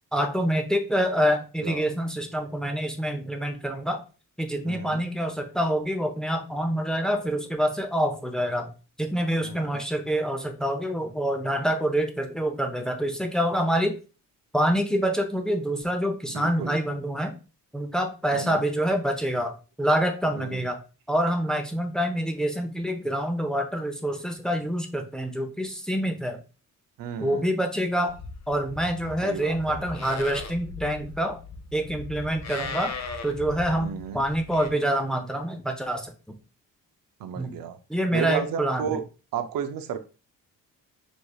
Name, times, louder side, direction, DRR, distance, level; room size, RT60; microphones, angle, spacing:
voice 1, 0.1-4.0 4.4-8.7 9.0-13.9 14.5-17.3 17.7-20.8 21.1-26.4 27.2-28.1 28.5-31.4 31.7-32.9 33.2-36.3 37.4-37.5 37.9-39.0, equal, ahead, 4 dB, 0.8 m, -26 dB
voice 2, 1.6-1.9 4.6-5.0 9.4-9.7 16.3-16.8 18.3-18.6 20.3-20.7 27.0-27.5 29.2-29.8 33.8-34.2 37.2-37.8 38.1-39.0 39.3-40.0, right 7 dB, 70° right, 9 dB, 0.7 m, -33 dB
Livestock farm animals working animals, 28.1-34.7, left 4 dB, 50° left, 0.7 m, -39 dB
5.2 x 3.0 x 2.3 m, 0.33 s
cardioid pair, 75°, 35 cm